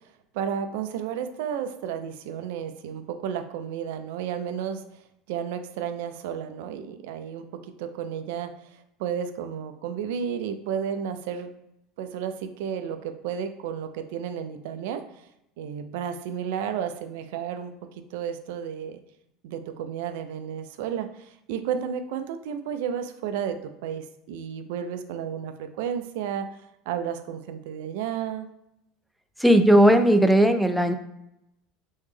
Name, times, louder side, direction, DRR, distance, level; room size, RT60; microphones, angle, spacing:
voice 1, 0.3-4.8 5.3-8.5 9.0-11.5 12.0-15.0 15.6-19.0 19.4-26.5 26.9-28.5, right 8 dB, 70° right, 9 dB, 0.4 m, -32 dB
voice 2, 29.4-30.9, equal, ahead, 7 dB, 0.4 m, -17 dB
3.3 x 3.1 x 3.2 m, 0.85 s
hypercardioid pair, 75°, 0 cm